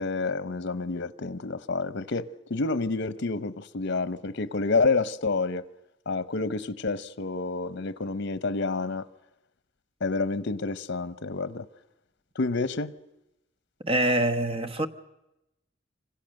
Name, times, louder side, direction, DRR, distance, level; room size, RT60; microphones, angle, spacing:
voice 1, 0.0-5.6 6.1-9.1 10.0-11.7 12.4-12.9, left 3 dB, 65° left, 0.8 m, -29 dB
voice 2, 13.8-14.9, right 1 dB, 30° right, 1.2 m, -25 dB
26.5 x 25.5 x 6.5 m
head